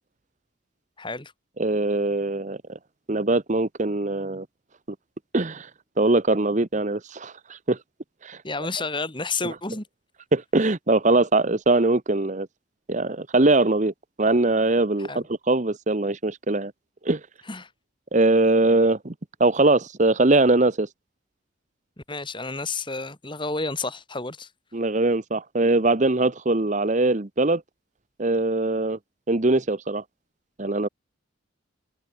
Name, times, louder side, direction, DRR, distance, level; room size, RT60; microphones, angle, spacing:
voice 1, 1.0-1.3 8.4-9.9 15.1-15.3 17.5-17.7 22.1-24.5, left 3 dB, 25° left, 3.1 m, -30 dB
voice 2, 1.6-2.8 3.1-4.4 5.3-5.7 6.0-7.8 8.2-8.4 9.4-9.5 10.3-12.5 12.9-13.9 14.2-16.7 17.0-17.2 18.1-19.1 19.4-20.9 24.7-27.6 28.2-29.0 29.3-30.0 30.6-30.9, right 2 dB, 35° right, 1.0 m, -22 dB
open air
head